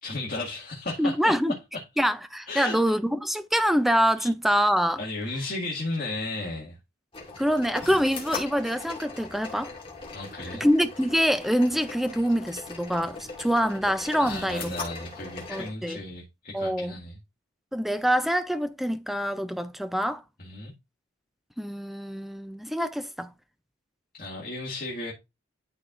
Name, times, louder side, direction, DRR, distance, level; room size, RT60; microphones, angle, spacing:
voice 1, 0.0-1.3 2.5-3.0 4.2-4.3 5.0-6.8 10.1-10.6 14.2-17.2 20.4-20.7 24.1-25.1, left 2 dB, 40° left, 1.9 m, -34 dB
voice 2, 1.0-1.6 2.0-5.0 7.4-9.7 10.5-14.7 15.5-16.0 16.5-17.0 17.7-20.2 21.6-23.3, equal, ahead, 0.4 m, -25 dB
sound 1, 7.1-15.7, left 3 dB, 25° left, 2.1 m, -40 dB
12.0 x 4.5 x 2.5 m
head